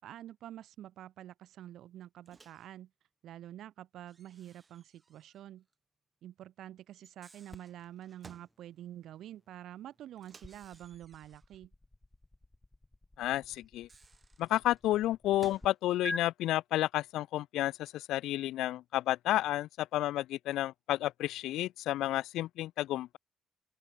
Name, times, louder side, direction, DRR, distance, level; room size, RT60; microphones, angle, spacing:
voice 1, 0.0-2.9 3.2-5.7 6.2-11.7, right 12 dB, 75° right, 5.5 m, -48 dB
Microwave oven, 2.3-2.7 4.1-5.4 5.7-5.8 6.9-8.6 10.2-11.6 13.6-15.8, right 4 dB, 30° right, 4.5 m, -59 dB
sound 1, 7.5-15.7 16.1-16.2, left 2 dB, 15° left, 1.0 m, -48 dB
voice 2, 13.2-13.9 14.4-23.2, left 14 dB, 85° left, 0.7 m, -31 dB
open air
cardioid pair, 90°, 0 cm